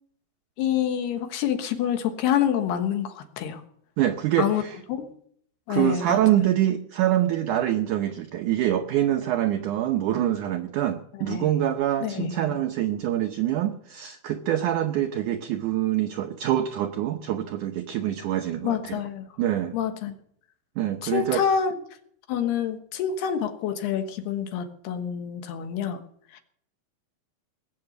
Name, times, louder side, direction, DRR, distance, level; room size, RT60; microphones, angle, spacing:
voice 1, 0.6-3.6 4.4-4.6 4.9-5.1 5.7-6.2 11.3-11.6 12.0-12.6 18.6-19.3 19.7-20.1 21.0-21.8 22.3-26.0 26.3-26.4, left 8 dB, 80° left, 7 dB, 3.4 m, -27 dB
voice 2, 4.0-4.8 5.7-19.0 19.4-19.7 20.8-21.4, right 12 dB, 75° right, 6 dB, 1.9 m, -25 dB
19.5 x 7.9 x 8.0 m, 0.67 s
omnidirectional pair, 4.6 m